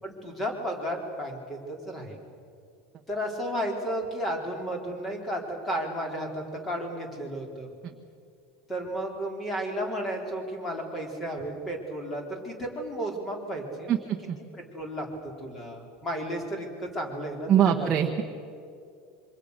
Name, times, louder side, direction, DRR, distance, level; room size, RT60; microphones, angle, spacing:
voice 1, 0.0-2.2 3.1-7.7 8.7-13.9 14.7-15.1 15.4-17.9, equal, 15° left, 2 dB, 4.0 m, -33 dB
voice 2, 13.9-14.4 17.5-18.2, right 9 dB, 25° right, 2 dB, 1.2 m, -23 dB
27.0 x 25.5 x 6.7 m, 2.4 s
supercardioid pair, 170°, 0 cm